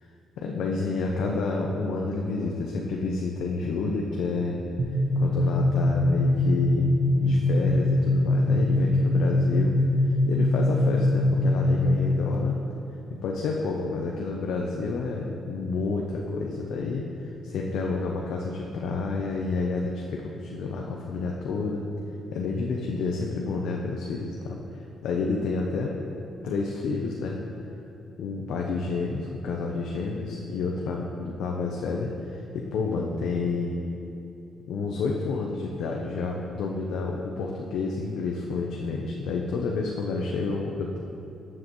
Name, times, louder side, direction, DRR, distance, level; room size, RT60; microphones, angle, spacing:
voice 1, 0.4-4.6 5.2-6.9 7.2-9.8 10.3-12.6 13.2-21.8 22.3-25.9 26.4-27.4 28.2-33.8 34.7-41.0, left 3 dB, 90° left, 0 dB, 0.7 m, -29 dB
sound 1, 4.8-12.3, left 1 dB, 60° right, 1.0 m, -22 dB
13.5 x 7.6 x 3.1 m, 2.9 s
cardioid pair, 175°, 0 cm